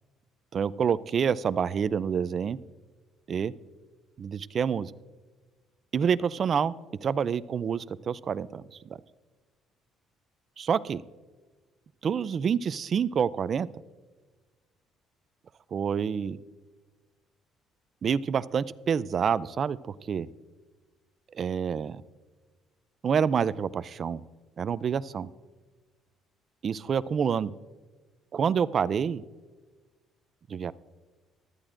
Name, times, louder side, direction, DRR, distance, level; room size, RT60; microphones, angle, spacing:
voice 1, 0.5-2.6 3.3-3.5 4.2-4.9 5.9-6.8 7.0-9.0 10.6-11.0 12.0-13.7 15.7-16.4 18.0-20.3 21.3-22.0 23.0-24.2 24.6-25.3 26.6-27.5 28.3-29.2 30.5-30.7, right 7 dB, 35° right, 17 dB, 0.3 m, -27 dB
18.5 x 12.5 x 2.5 m, 1.3 s
cardioid pair, 150°, 0 cm